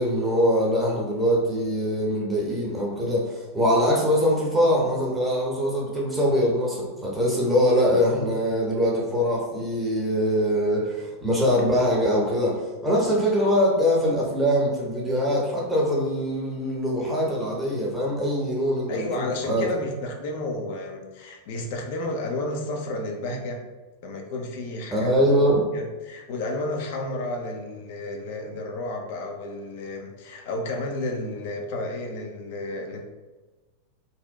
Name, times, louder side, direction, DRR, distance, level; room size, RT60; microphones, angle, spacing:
voice 1, 0.0-19.7 24.9-25.7, equal, 5° right, -5 dB, 0.6 m, -23 dB
voice 2, 18.9-23.7 24.0-25.1 25.7-33.1, left 2 dB, 50° left, 2 dB, 0.4 m, -32 dB
2.7 x 2.0 x 2.3 m, 1.2 s
figure-of-eight pair, 90°, 0 cm